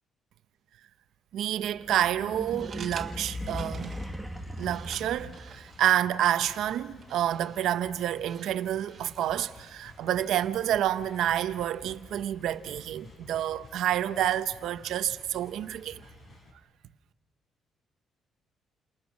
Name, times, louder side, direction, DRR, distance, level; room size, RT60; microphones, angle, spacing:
voice 1, 1.3-4.0 4.6-16.0, right 11 dB, 75° right, 0.9 m, -29 dB
sound 1, 1.5-5.8, equal, ahead, 1.5 m, -38 dB
sound 2, 2.3-9.6, right 6 dB, 35° right, 1.9 m, -50 dB
sound 3, 4.0-16.5, left 3 dB, 40° left, 5.1 m, -52 dB
29.5 x 28.0 x 6.3 m
cardioid pair, 150°, 0 cm